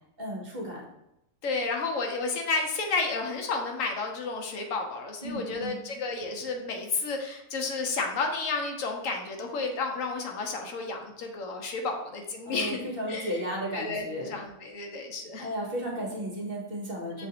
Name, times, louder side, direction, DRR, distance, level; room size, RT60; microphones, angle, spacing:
voice 1, 0.2-0.9 5.2-5.8 12.4-14.4 15.4-17.3, equal, 45° right, -2 dB, 1.0 m, -34 dB
voice 2, 1.4-12.8 13.1-13.3 13.7-15.5 17.2-17.3, left 3 dB, 75° left, 3 dB, 1.0 m, -31 dB
6.2 x 2.5 x 2.8 m, 0.84 s
omnidirectional pair, 1.4 m